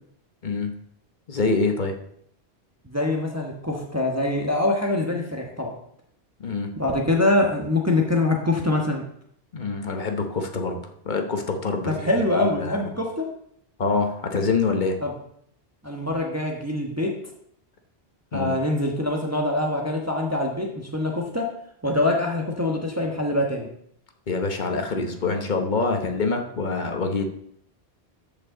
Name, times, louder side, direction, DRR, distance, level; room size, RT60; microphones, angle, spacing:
voice 1, 1.3-2.0 6.4-6.7 9.5-10.8 11.0-11.9 12.4-12.8 13.8-15.0 18.3-18.5 24.3-27.3, left 4 dB, 45° left, 4 dB, 1.1 m, -25 dB
voice 2, 2.8-5.7 6.7-9.0 11.8-13.2 15.0-15.1 15.8-17.1 18.3-21.4 21.8-23.7, left 2 dB, 15° right, 0 dB, 1.2 m, -24 dB
13.5 x 5.3 x 3.8 m, 0.68 s
omnidirectional pair, 1.1 m